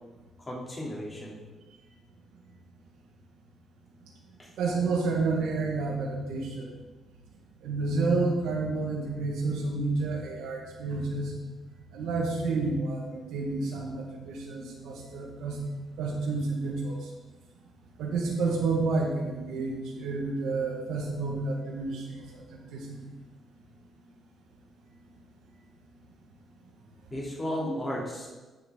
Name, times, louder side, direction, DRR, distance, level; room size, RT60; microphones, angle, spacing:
voice 1, 0.5-1.4 4.4-4.5 27.1-28.3, equal, 25° left, -5 dB, 3.1 m, -34 dB
voice 2, 4.6-6.7 7.6-11.3 11.9-15.6 16.0-16.9 18.0-23.0 27.6-27.7, right 3 dB, 85° right, 0 dB, 1.6 m, -30 dB
10.5 x 5.9 x 3.8 m, 1.2 s
cardioid pair, 90°, 0 cm